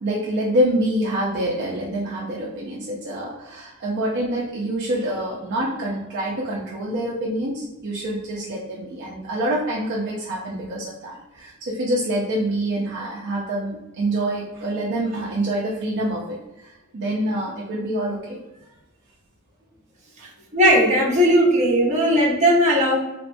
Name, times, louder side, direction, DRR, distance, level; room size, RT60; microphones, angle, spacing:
voice 1, 0.0-16.4 16.6-18.4, right 1 dB, 55° right, -4 dB, 0.4 m, -26 dB
voice 2, 20.5-23.0, equal, 35° right, -4 dB, 0.8 m, -17 dB
2.8 x 2.2 x 2.6 m, 0.99 s
head